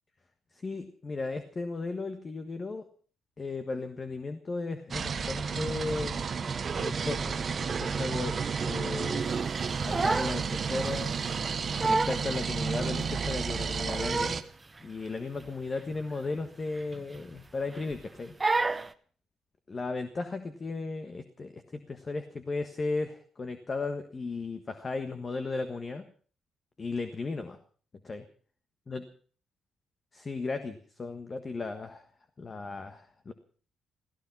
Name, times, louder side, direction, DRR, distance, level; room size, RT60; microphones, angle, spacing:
voice 1, 0.6-2.9 3.4-6.2 6.7-9.4 9.8-11.1 11.8-14.4 14.8-18.3 19.7-26.1 26.8-27.6 28.0-28.2 28.9-29.0 30.1-32.0 32.4-33.3, left 3 dB, 35° left, 8 dB, 1.5 m, -35 dB
sound 1, 4.9-14.4, right 5 dB, 40° right, 1.1 m, -31 dB
Crying sobbing, 9.6-10.4 10.8-11.0 11.5-11.6 11.8-12.2 12.8-12.9 13.6-14.5 14.8-15.0 15.4-15.5 15.9-16.0 16.8-17.4 17.7-18.0 18.4-18.9, right 3 dB, 20° right, 0.9 m, -29 dB
16.5 x 14.5 x 5.8 m, 0.43 s
cardioid pair, 90°, 0 cm